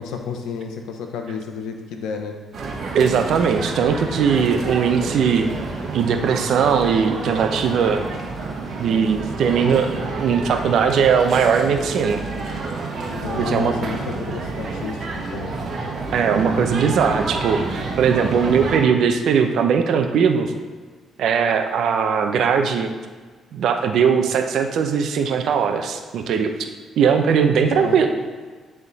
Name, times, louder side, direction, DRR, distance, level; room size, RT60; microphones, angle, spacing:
voice 1, 0.0-2.3 13.1-15.6 27.7-28.0, left 6 dB, 90° left, 4 dB, 0.8 m, -31 dB
sound 1, 2.5-18.8, right 3 dB, 55° right, 1.1 m, -29 dB
voice 2, 2.9-5.5 5.9-8.0 8.8-12.2 13.4-13.7 16.1-20.5 21.2-22.9 23.5-26.5 27.0-28.1, right 6 dB, 75° right, 6 dB, 0.6 m, -19 dB
9.7 x 3.7 x 4.0 m, 1.5 s
cardioid pair, 90°, 0 cm